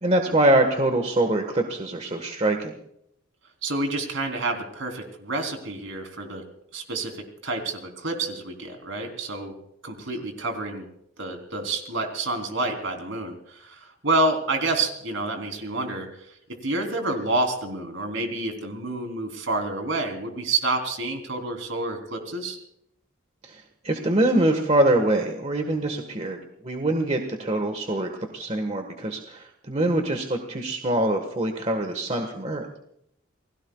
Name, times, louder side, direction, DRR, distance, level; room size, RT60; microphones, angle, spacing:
voice 1, 0.0-2.7 23.4-26.4 26.6-32.7, right 1 dB, 30° right, 4 dB, 1.5 m, -24 dB
voice 2, 3.6-6.4 6.7-9.6 9.8-10.9 11.2-16.3 16.6-22.6, right 2 dB, 65° right, 4 dB, 3.6 m, -28 dB
29.5 x 20.0 x 2.4 m, 0.74 s
head